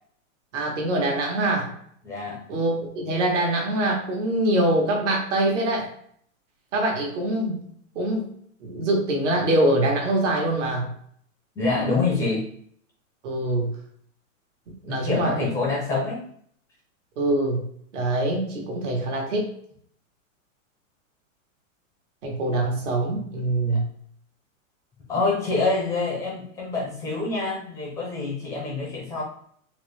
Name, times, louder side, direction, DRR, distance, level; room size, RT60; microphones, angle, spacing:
voice 1, 0.5-1.7 2.5-5.9 6.7-7.6 7.9-8.3 8.6-10.9 13.2-13.7 14.8-15.5 17.2-17.7 17.9-19.5 22.2-23.9, right 1 dB, 60° right, 0 dB, 1.4 m, -24 dB
voice 2, 2.0-2.4 11.6-12.5 14.9-16.2 23.6-23.8 25.1-29.2, left 3 dB, 10° left, -3 dB, 0.5 m, -26 dB
4.1 x 2.1 x 3.3 m, 0.63 s
supercardioid pair, 155°, 41 cm